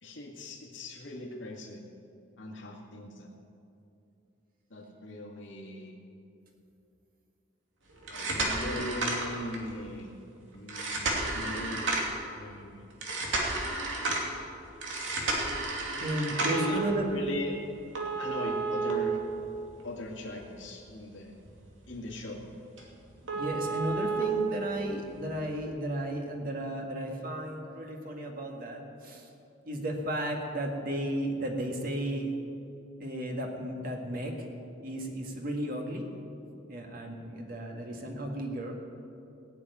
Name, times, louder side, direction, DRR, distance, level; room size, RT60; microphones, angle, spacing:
voice 1, 0.0-1.8 2.4-3.3 4.7-6.0 8.1-10.1 10.5-11.0 11.3-11.9 12.3-12.8 16.5-16.8 17.1-17.5 18.2-19.2 19.8-21.3 21.9-22.4, left 1 dB, 85° left, -2 dB, 2.1 m, -39 dB
sound 1, 8.0-9.7 10.7-12.2 13.0-14.3 14.8-16.8 18.0-19.8 20.2-20.3 20.9-21.0 21.4-21.6 21.9-22.0 22.4-22.5 22.8-22.9 23.3-24.2 25.3-25.4, right 2 dB, 90° right, 2.7 m, -31 dB
voice 2, 16.0-17.1 23.3-29.3 29.6-32.3 33.0-34.5 34.8-36.1 36.7-38.7, right 1 dB, 50° right, 2 dB, 1.8 m, -34 dB
17.0 x 7.1 x 9.5 m, 2.7 s
head